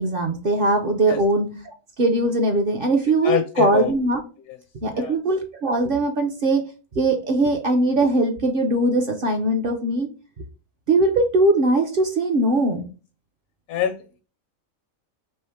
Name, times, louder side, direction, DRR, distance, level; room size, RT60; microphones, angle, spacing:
voice 1, 0.0-1.5 2.0-4.2 4.8-6.6 6.9-10.1 10.9-12.9, right 2 dB, 55° right, 4 dB, 0.7 m, -20 dB
voice 2, 3.2-3.9 4.9-5.1 13.7-14.0, left 11 dB, 80° left, 6 dB, 1.0 m, -24 dB
3.5 x 3.3 x 4.4 m, 0.34 s
omnidirectional pair, 1.5 m